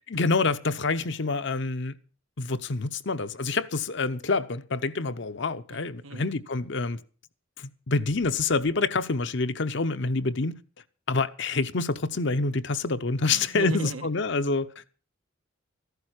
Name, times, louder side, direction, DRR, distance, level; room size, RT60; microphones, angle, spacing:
voice 1, 0.1-1.9 2.4-7.0 7.6-10.6 11.1-14.8, left 3 dB, 60° left, 0.8 m, -27 dB
voice 2, 13.3-14.1, right 2 dB, 85° right, 1.6 m, -36 dB
14.5 x 12.0 x 6.3 m
head